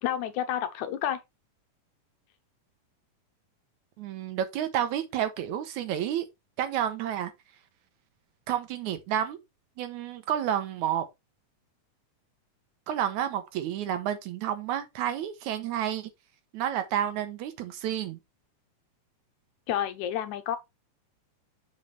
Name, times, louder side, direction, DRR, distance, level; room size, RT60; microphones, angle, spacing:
voice 1, 0.0-1.2 19.7-20.6, left 10 dB, 75° left, 2.0 m, -30 dB
voice 2, 4.0-6.3 6.6-7.3 8.5-9.4 9.8-11.1 12.9-16.1 16.5-18.2, right 10 dB, 75° right, 2.1 m, -30 dB
7.5 x 5.3 x 3.2 m
omnidirectional pair, 3.7 m